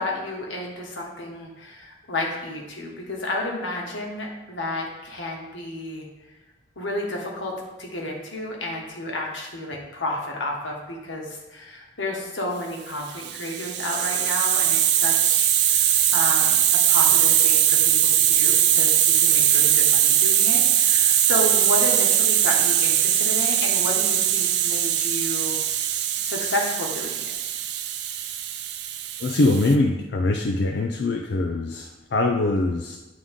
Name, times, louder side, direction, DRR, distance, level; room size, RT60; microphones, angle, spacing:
voice 1, 0.0-6.0 6.8-7.5 7.8-16.6 16.9-25.6 26.2-27.3, left 2 dB, 80° left, -1 dB, 1.4 m, -31 dB
Hiss, 13.1-29.7, right 11 dB, 60° right, 0.5 m, -21 dB
voice 2, 29.2-33.0, left 2 dB, 60° left, 2 dB, 0.4 m, -23 dB
9.3 x 3.8 x 3.6 m, 1.1 s
head